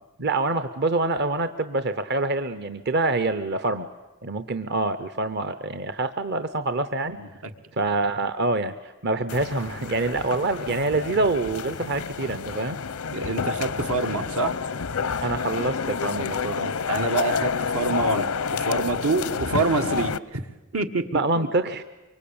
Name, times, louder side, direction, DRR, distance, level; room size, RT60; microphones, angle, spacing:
voice 1, 0.2-3.9 4.2-7.2 7.7-12.8 15.2-16.7 21.1-21.8, right 2 dB, 50° right, 11 dB, 0.8 m, -26 dB
sound 1, 9.3-20.2, left 5 dB, 90° left, 0.7 m, -29 dB
voice 2, 13.1-14.5 16.9-18.3 18.6-20.4 20.7-21.0, right 3 dB, 80° right, 6 dB, 1.7 m, -26 dB
24.5 x 24.5 x 8.7 m, 1.2 s
head